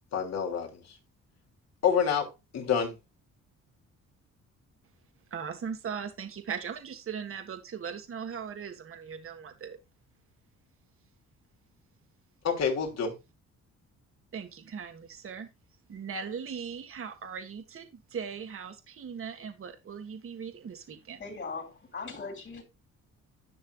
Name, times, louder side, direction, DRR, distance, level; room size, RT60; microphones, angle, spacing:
voice 1, 0.1-0.8 1.8-2.3 2.5-2.9 12.4-13.1, left 7 dB, 60° left, 3.1 m, -27 dB
voice 2, 5.3-9.8 14.3-15.5 15.9-21.2, right 6 dB, 45° right, 1.6 m, -39 dB
voice 3, 21.2-22.6, left 4 dB, 40° left, 3.5 m, -39 dB
11.5 x 6.5 x 2.4 m
cardioid pair, 90°, 30 cm